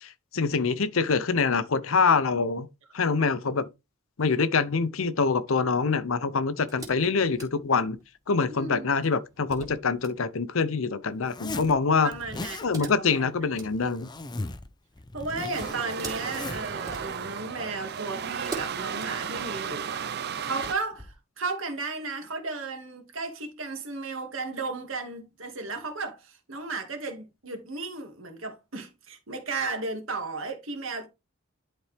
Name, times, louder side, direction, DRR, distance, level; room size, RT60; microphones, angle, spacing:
voice 1, 0.0-2.7 2.9-3.7 4.2-8.0 8.3-12.1 12.6-14.1, left 4 dB, 70° left, 0.7 m, -25 dB
sound 1, 6.7-8.2 9.0-10.2 12.5-14.7 15.7-17.5 18.4-19.7 20.3-21.1, right 2 dB, 15° right, 2.5 m, -44 dB
voice 2, 8.5-9.0 12.0-13.3 15.1-20.1 20.4-31.1, right 3 dB, 65° right, 2.0 m, -34 dB
Zipper (clothing), 11.2-11.7 12.1-12.7 13.5-14.7 15.0-16.7, left 2 dB, 20° left, 0.6 m, -38 dB
sound 2, 15.5-20.7, right 7 dB, 50° right, 0.5 m, -34 dB
11.0 x 4.2 x 3.4 m
head